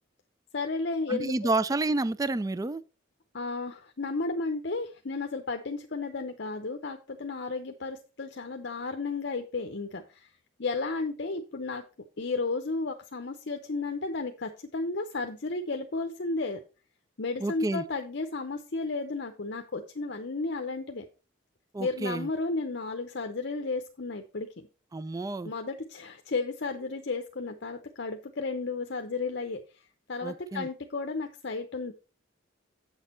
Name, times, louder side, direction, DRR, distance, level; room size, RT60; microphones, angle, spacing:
voice 1, 0.5-1.5 3.3-10.3 10.6-11.8 12.2-16.6 17.2-21.1 21.8-24.7 25.4-29.6 30.1-31.9, left 3 dB, 60° left, 0.7 m, -33 dB
voice 2, 1.1-2.8 17.4-17.8 21.7-22.3 24.9-25.5 30.2-30.7, right 2 dB, 20° right, 0.3 m, -29 dB
8.1 x 6.5 x 4.3 m
head